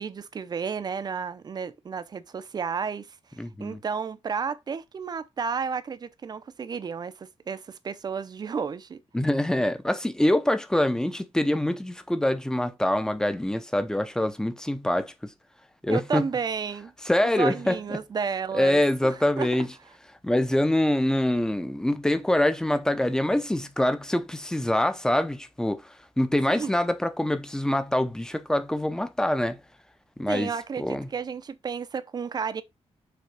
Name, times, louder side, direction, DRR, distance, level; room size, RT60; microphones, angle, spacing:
voice 1, 0.0-3.1 3.4-9.0 15.9-16.9 17.2-19.5 26.5-26.7 30.3-32.6, right 6 dB, 35° right, 0.6 m, -32 dB
voice 2, 3.4-3.8 9.1-15.3 15.8-16.3 17.0-17.8 18.5-19.7 20.2-25.9 26.2-29.6 30.2-30.5 30.8-31.1, left 1 dB, 5° left, 0.7 m, -25 dB
6.8 x 3.5 x 4.8 m
wide cardioid pair, 150°, 11 cm